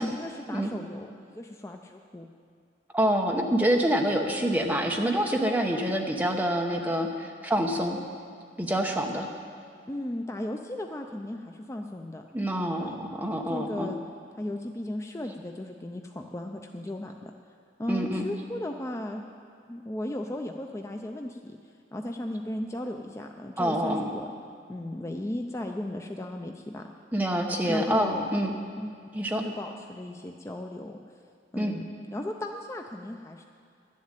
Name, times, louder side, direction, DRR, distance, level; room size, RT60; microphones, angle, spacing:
voice 1, 0.0-2.3 9.9-12.2 12.8-13.0 13.5-14.0 14.4-17.3 17.8-19.2 19.7-21.6 21.9-24.3 24.7-26.9 27.7-28.2 28.8-28.9 29.2-31.0 31.5-31.8 32.1-33.5, left 1 dB, 15° left, 3 dB, 0.4 m, -35 dB
voice 2, 2.9-8.0 8.6-9.3 12.3-13.9 17.9-18.2 23.6-24.1 27.1-28.5 29.1-29.4 31.6-31.8, equal, 10° right, 1 dB, 1.0 m, -26 dB
11.5 x 7.4 x 9.0 m, 2.2 s
head